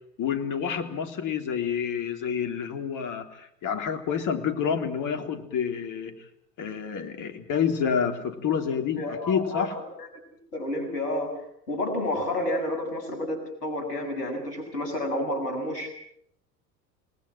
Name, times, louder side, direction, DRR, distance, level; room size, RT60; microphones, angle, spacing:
voice 1, 0.2-6.2 6.6-9.7, left 7 dB, 40° left, 6 dB, 3.6 m, -28 dB
voice 2, 9.0-9.7 10.0-10.1 10.5-11.4 11.7-15.9, left 1 dB, 75° left, 6 dB, 6.9 m, -30 dB
28.5 x 20.0 x 7.6 m, 0.72 s
figure-of-eight pair, 75°, 47 cm